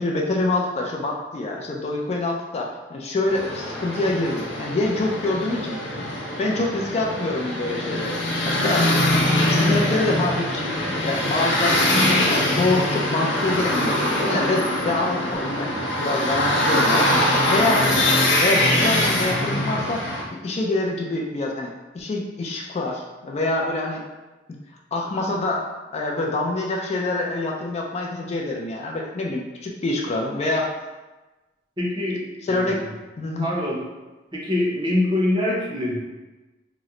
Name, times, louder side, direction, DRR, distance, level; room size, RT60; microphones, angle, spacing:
voice 1, 0.0-5.8 6.4-8.2 8.5-18.0 18.4-24.0 24.9-25.7 25.9-30.7 32.4-32.8 33.2-33.5, left 2 dB, 35° left, 0 dB, 0.3 m, -26 dB
sound 1, 3.3-20.2, left 1 dB, 80° left, 0.6 m, -23 dB
voice 2, 31.8-32.2 32.5-32.7 33.4-33.8 34.3-36.0, left 1 dB, 25° right, -4 dB, 0.6 m, -24 dB
2.9 x 2.0 x 3.7 m, 1.1 s
head